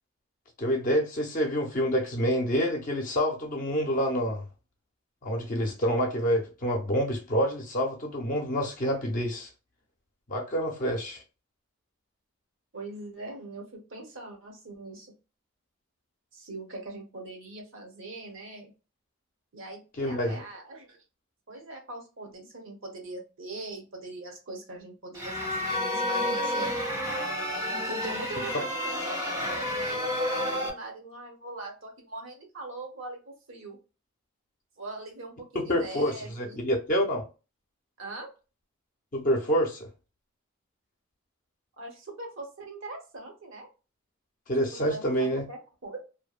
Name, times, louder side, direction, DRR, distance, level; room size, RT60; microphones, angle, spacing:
voice 1, 0.6-4.4 5.2-9.5 10.3-11.2 20.0-20.4 35.5-37.2 39.1-39.9 44.5-45.4, equal, 40° left, 0.5 m, -27 dB
voice 2, 12.7-15.1 16.3-18.7 19.5-21.0 21.5-26.7 27.7-33.8 34.8-36.6 38.0-38.3 41.8-43.7 44.7-46.0, right 2 dB, 65° right, 0.8 m, -42 dB
sound 1, 25.1-30.7, left 1 dB, 15° right, 0.5 m, -30 dB
2.6 x 2.1 x 2.4 m
head